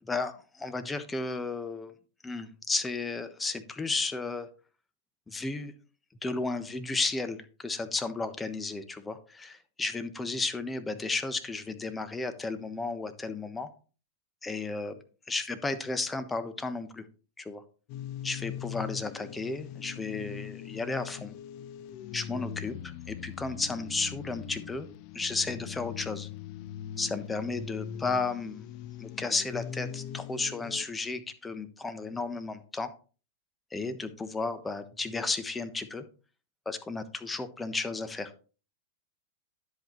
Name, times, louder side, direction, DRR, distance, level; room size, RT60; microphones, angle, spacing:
voice 1, 0.0-1.9 2.2-4.5 5.3-5.7 6.2-13.7 14.4-15.0 15.3-17.0 17.4-17.6 18.2-21.3 22.1-24.9 25.1-26.3 27.0-28.7 29.0-32.9 33.7-36.0 36.6-38.3, left 3 dB, 15° left, 10 dB, 1.1 m, -33 dB
sound 1, 17.9-30.9, left 10 dB, 55° left, 0.7 m, -41 dB
10.5 x 8.0 x 3.1 m, 0.36 s
hypercardioid pair, 105°, 0 cm